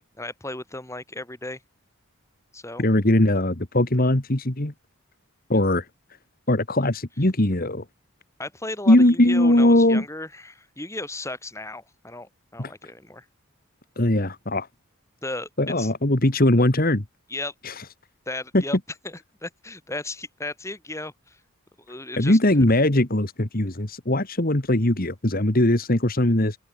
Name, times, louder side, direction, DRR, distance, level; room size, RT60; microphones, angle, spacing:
voice 1, 0.2-1.6 2.5-2.8 8.4-13.2 15.2-15.5 15.8-15.9 17.3-17.5 18.3-18.8 19.0-21.4 21.9-22.7, left 2 dB, 15° left, 3.3 m, -35 dB
voice 2, 2.8-4.7 5.5-5.9 6.5-7.8 8.9-10.0 12.6-12.7 14.0-14.7 15.6-17.0 17.6-17.7 18.5-18.6 22.2-26.6, left 1 dB, 40° left, 1.9 m, -20 dB
open air
head